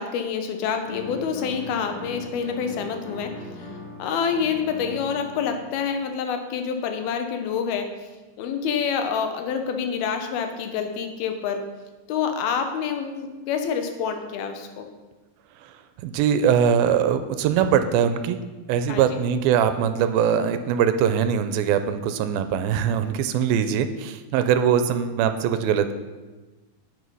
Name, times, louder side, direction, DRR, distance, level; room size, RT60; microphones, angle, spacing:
voice 1, 0.0-3.7 4.0-7.9 8.4-11.6 12.1-14.9 18.9-19.2, left 6 dB, 90° left, 6 dB, 2.9 m, -27 dB
sound 1, 0.9-5.9, left 1 dB, 35° left, 2.1 m, -39 dB
voice 2, 16.0-18.4 18.7-25.9, right 8 dB, 85° right, 10 dB, 2.4 m, -22 dB
9.5 x 8.7 x 5.5 m, 1.2 s
omnidirectional pair, 4.2 m